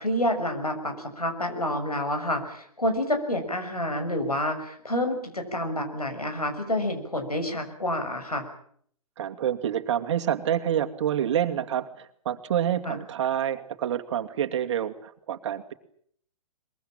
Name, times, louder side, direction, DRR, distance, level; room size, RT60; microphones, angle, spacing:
voice 1, 0.0-8.4 12.8-13.0, left 1 dB, 90° left, 6 dB, 6.4 m, -28 dB
voice 2, 9.2-15.7, right 10 dB, 50° right, 7 dB, 2.5 m, -27 dB
23.5 x 22.0 x 8.8 m, 0.63 s
figure-of-eight pair, 120°, 19 cm